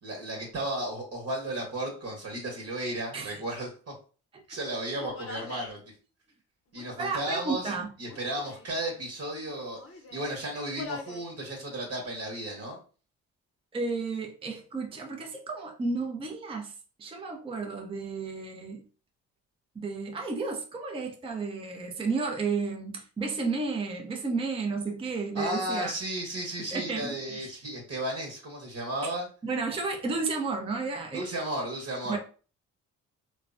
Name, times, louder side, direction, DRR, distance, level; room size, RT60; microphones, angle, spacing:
voice 1, 0.0-3.9 4.5-5.8 6.7-7.7 8.0-9.8 10.1-12.8 25.3-29.3 31.1-32.2, right 1 dB, 50° right, 1.1 m, -34 dB
Human voice, 5.0-5.8 6.7-7.6 8.0-8.7 9.4-10.3 10.7-11.3 11.7-12.3, left 4 dB, 40° left, 0.7 m, -45 dB
voice 2, 7.0-7.9 13.7-16.7 17.0-18.8 19.8-25.9 26.6-27.5 29.0-29.1 29.4-31.3 32.1-32.2, right 4 dB, 15° right, 0.5 m, -32 dB
3.1 x 2.1 x 2.5 m
supercardioid pair, 60°, 34 cm